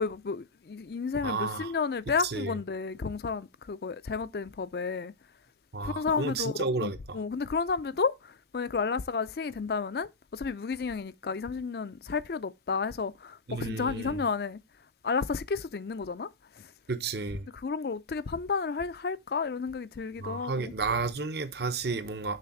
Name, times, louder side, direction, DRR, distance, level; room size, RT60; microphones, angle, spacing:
voice 1, 0.0-5.1 5.8-14.6 15.0-16.3 17.6-20.7, left 5 dB, 55° left, 0.4 m, -32 dB
voice 2, 1.2-1.7 2.2-2.6 5.7-7.2 13.5-14.2 16.9-17.5 20.2-22.4, right 4 dB, 65° right, 0.8 m, -32 dB
6.7 x 3.5 x 5.8 m
head